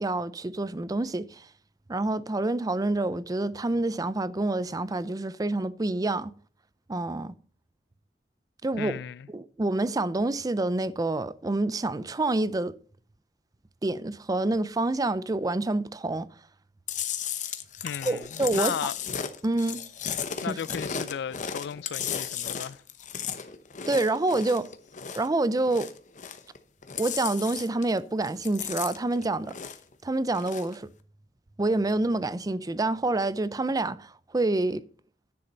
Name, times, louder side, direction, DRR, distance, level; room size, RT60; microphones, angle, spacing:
voice 1, 0.0-1.4 1.9-6.3 6.9-7.3 8.6-8.9 9.3-12.7 13.8-16.3 18.0-18.8 19.4-19.8 20.5-20.6 23.9-24.7 25.1-25.9 27.0-29.5 30.0-30.9 31.6-34.8, right 2 dB, 20° right, 0.5 m, -27 dB
voice 2, 8.8-9.3 17.8-19.0 20.4-22.8, left 7 dB, 70° left, 0.3 m, -35 dB
Chewing mastication, 16.9-25.3 25.6-26.6 26.8-28.0 28.2-29.9 30.3-30.7, left 8 dB, 45° left, 0.9 m, -35 dB
9.9 x 6.9 x 5.4 m
head